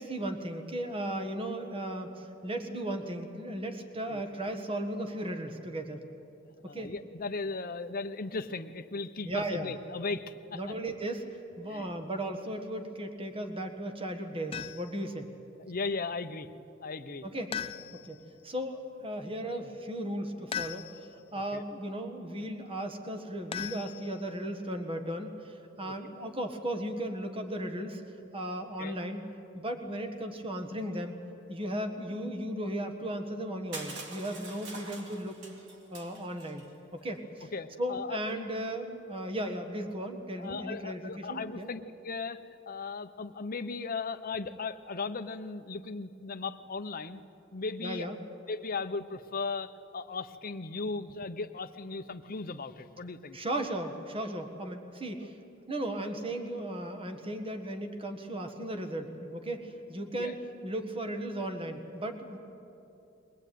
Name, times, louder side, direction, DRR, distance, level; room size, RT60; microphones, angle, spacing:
voice 1, 0.0-6.0 6.7-6.9 9.2-9.7 10.5-11.3 11.6-15.3 17.2-17.5 17.9-28.0 28.3-29.2 29.5-31.1 31.5-35.4 35.9-36.6 36.9-37.5 37.8-41.7 47.8-48.2 53.3-55.4 55.7-62.4, right 1 dB, 25° right, 6 dB, 1.6 m, -36 dB
voice 2, 6.6-10.8 11.6-11.9 15.6-16.5 16.8-17.2 21.5-21.6 25.8-25.9 28.8-29.0 37.5-38.2 40.4-47.2 47.5-48.1 48.5-53.4 60.1-60.4, left 4 dB, 45° left, 10 dB, 0.8 m, -37 dB
sound 1, 14.5-15.0 17.5-18.2 20.5-21.2 23.5-24.4, left 8 dB, 30° left, 0.5 m, -39 dB
Crushing, 33.7-36.7, right 2 dB, 60° right, 2.9 m, -45 dB
22.5 x 19.0 x 9.3 m, 2.8 s
head